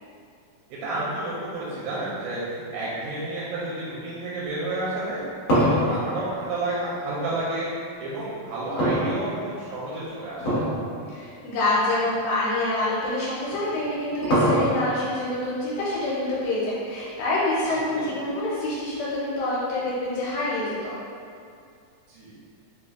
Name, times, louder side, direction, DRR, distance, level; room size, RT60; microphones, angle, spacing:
voice 1, 0.8-5.2 5.6-7.7 8.0-10.6 17.6-18.1 22.1-22.3, right 2 dB, 80° right, -8 dB, 2.1 m, -31 dB
sound 1, 5.1-7.4 8.8-9.7 10.4-10.8 11.2-11.3 12.0-12.1 13.5-15.0, equal, 55° left, 1.8 m, -23 dB
voice 2, 11.1-20.9, left 2 dB, 75° left, -8 dB, 2.4 m, -26 dB
5.9 x 2.4 x 2.4 m, 2.3 s
omnidirectional pair, 4.4 m